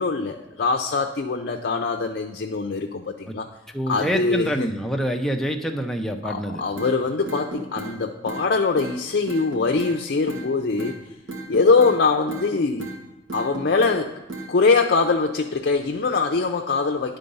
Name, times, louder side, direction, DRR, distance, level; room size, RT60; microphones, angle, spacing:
voice 1, 0.0-3.5 3.9-4.7 6.2-11.0 11.5-12.9 13.3-14.2 14.5-17.2, left 4 dB, 55° left, 3 dB, 0.5 m, -22 dB
voice 2, 3.7-6.6, equal, ahead, 2 dB, 0.5 m, -26 dB
sound 1, 6.8-6.9 7.3-7.9 8.3-8.4 8.8-8.9 9.3-9.9 10.3-10.5 10.8-10.9 11.3-12.0 12.3-12.5 12.8-13.0 13.3-14.0 14.3-14.5, right 3 dB, 85° right, 1.5 m, -34 dB
9.9 x 3.8 x 5.4 m, 1.0 s
head